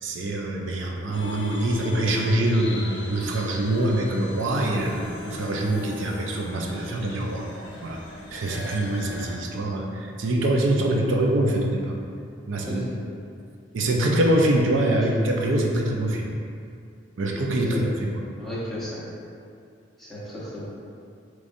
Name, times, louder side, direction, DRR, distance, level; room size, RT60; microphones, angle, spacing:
voice 1, 0.0-7.4 7.8-8.0 8.3-11.9 12.5-12.8 13.7-16.3 17.2-18.2, right 1 dB, 75° right, 0 dB, 0.5 m, -24 dB
sound 1, 1.1-9.3, left 2 dB, 60° left, 0.6 m, -40 dB
voice 2, 12.6-13.0 14.7-15.1 17.7-17.8 18.4-19.0 20.0-20.6, left 1 dB, ahead, -10 dB, 0.9 m, -34 dB
4.9 x 3.1 x 2.6 m, 2.4 s
head